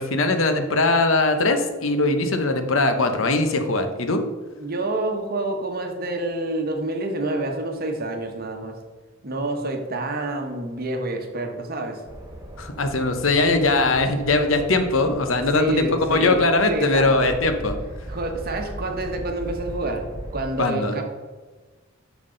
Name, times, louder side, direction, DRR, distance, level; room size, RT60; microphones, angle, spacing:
voice 1, 0.0-4.3 12.6-17.8 20.6-20.9, left 2 dB, 85° left, 7 dB, 0.9 m, -21 dB
voice 2, 4.6-8.8 9.2-12.0 15.5-17.3 18.1-20.0 20.3-21.0, right 2 dB, 50° right, 4 dB, 1.1 m, -28 dB
sound 1, 12.1-20.5, right 1 dB, 20° right, 1.0 m, -38 dB
7.4 x 6.1 x 3.9 m, 1.4 s
head